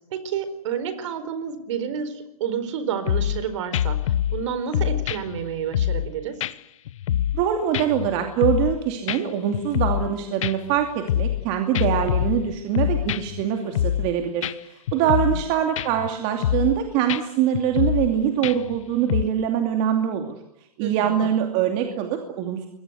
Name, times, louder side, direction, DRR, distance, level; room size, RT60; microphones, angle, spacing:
voice 1, 0.1-6.4 15.0-15.4 20.8-21.3, right 7 dB, 50° right, 13 dB, 4.4 m, -30 dB
sound 1, 3.1-3.4 3.7-4.4 4.7-6.1 6.4-6.5 6.9-7.5 7.7-8.8 9.1-9.2 9.5-10.1 10.4-11.4 11.7-13.4 13.7-14.1 14.4-14.5 14.9-15.5 15.8-16.1 16.4-16.8 17.1-17.2 17.5-18.1 18.4-18.8 19.1-19.2, left 11 dB, 55° left, 1.1 m, -25 dB
voice 2, 7.3-20.4 20.8-22.7, right 9 dB, 30° right, 4 dB, 2.6 m, -24 dB
26.5 x 22.5 x 8.1 m, 0.80 s
hypercardioid pair, 150°, 20 cm